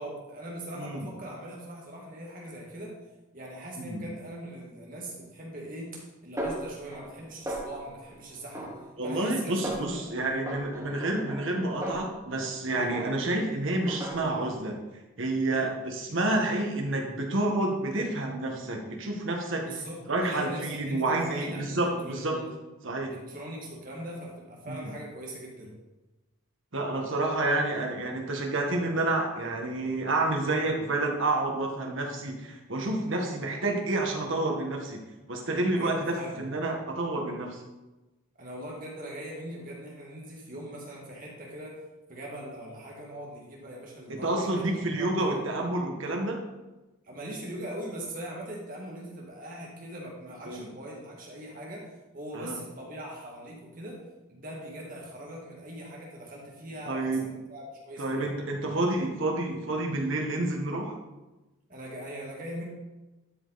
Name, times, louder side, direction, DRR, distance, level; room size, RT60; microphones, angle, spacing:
voice 1, 0.0-2.9 3.3-5.9 6.2-8.7 9.0-9.6 9.9-10.2 12.8-12.9 15.5-15.7 19.6-22.5 23.1-25.7 35.6-36.4 38.4-41.8 42.1-45.4 47.0-51.9 52.1-54.0 54.3-58.3 61.7-62.6, right 1 dB, 40° right, -3 dB, 1.9 m, -41 dB
Snare drum, 6.4-7.2 7.5-8.0 8.5-9.3 9.6-10.0 10.5-12.6 12.9-13.4 13.9-14.6, right 1 dB, 15° right, 1.6 m, -37 dB
voice 2, 9.0-14.7 15.2-19.6 20.1-22.4 22.8-23.1 24.7-24.9 26.7-35.0 35.3-37.6 44.2-46.4 50.4-50.7 52.3-52.6 56.9-57.3 58.0-60.9, right 2 dB, 65° right, 1 dB, 1.6 m, -29 dB
12.0 x 5.4 x 4.1 m, 1.1 s
head